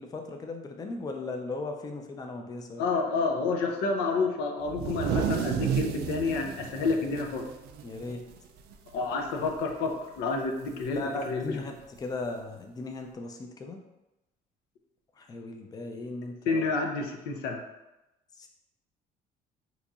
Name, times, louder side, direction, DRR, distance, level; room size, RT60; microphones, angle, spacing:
voice 1, 0.0-2.8 7.8-8.2 10.9-13.8 15.2-16.7 18.4-18.5, left 3 dB, 20° left, 4 dB, 0.4 m, -37 dB
voice 2, 2.8-7.5 8.9-11.6 16.5-17.6, left 4 dB, 90° left, 2 dB, 0.5 m, -29 dB
sound 1, 4.7-8.4 8.7-8.9 9.2-9.7 10.8-10.9 12.0-12.1, right 8 dB, 75° right, 0.4 m, -32 dB
3.9 x 2.9 x 2.3 m, 0.96 s
cardioid pair, 110°, 17 cm